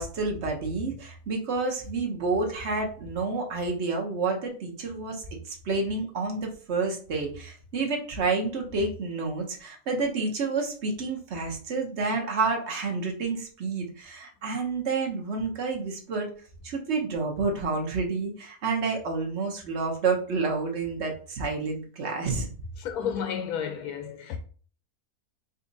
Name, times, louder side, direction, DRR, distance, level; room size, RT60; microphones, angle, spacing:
voice 1, 0.0-16.3 16.6-22.5, right 4 dB, 50° right, 1.2 m, -29 dB
voice 2, 22.8-24.4, left 8 dB, 80° left, 1.1 m, -32 dB
4.1 x 2.4 x 3.9 m
omnidirectional pair, 1.6 m